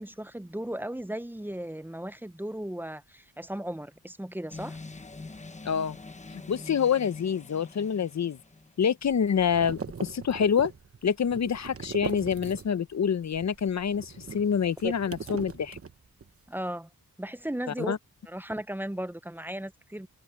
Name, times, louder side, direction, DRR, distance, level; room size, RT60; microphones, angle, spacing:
voice 1, 0.0-4.8 14.8-14.9 16.5-16.9 17.2-17.9 18.3-20.1, right 1 dB, 5° right, 0.6 m, -36 dB
sound 1, 4.5-8.9, left 3 dB, 20° left, 1.0 m, -44 dB
voice 2, 5.6-6.0 6.3-8.4 8.8-10.7 11.0-15.8 17.9-18.0, left 7 dB, 45° left, 0.7 m, -27 dB
sound 2, 9.0-12.9 13.2-16.4, right 5 dB, 40° right, 1.1 m, -40 dB
wide cardioid pair, 100°, 37 cm